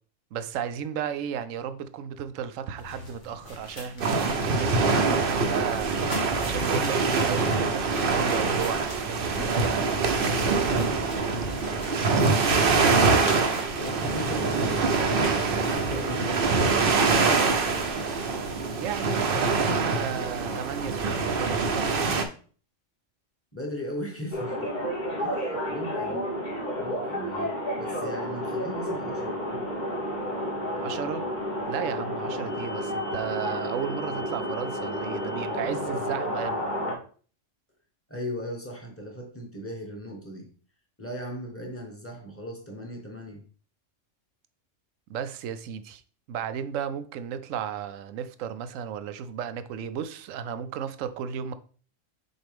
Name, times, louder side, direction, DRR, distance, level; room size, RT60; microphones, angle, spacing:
voice 1, 0.3-5.9 6.4-11.2 18.8-21.9 30.8-31.3 31.7-36.7 45.1-46.0 46.3-51.5, right 8 dB, 85° right, 1.0 m, -34 dB
sound 1, 2.8-18.3, left 2 dB, 70° left, 2.0 m, -43 dB
sound 2, 4.0-22.2, right 4 dB, 55° right, 0.8 m, -24 dB
voice 2, 12.4-13.4 13.8-18.0 23.5-24.7 25.2-26.2 26.8-29.4 38.1-40.5 41.0-43.4, equal, 10° left, 1.3 m, -38 dB
sound 3, 24.3-36.9, equal, 40° left, 1.4 m, -31 dB
6.4 x 4.4 x 3.5 m
omnidirectional pair, 1.3 m